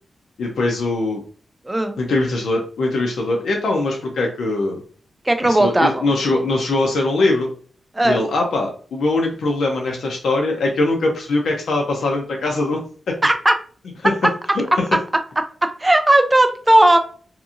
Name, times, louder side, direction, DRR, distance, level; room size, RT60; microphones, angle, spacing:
voice 1, 0.4-1.2 2.0-4.8 5.4-7.5 8.0-12.8 14.0-14.1 14.5-14.9, left 2 dB, 90° left, 0 dB, 0.5 m, -21 dB
voice 2, 1.7-2.0 5.3-6.1 7.9-8.2 13.2-13.5 15.8-17.0, right 1 dB, 15° right, 7 dB, 0.4 m, -15 dB
2.8 x 2.5 x 2.4 m, 0.43 s
wide cardioid pair, 125°, 0 cm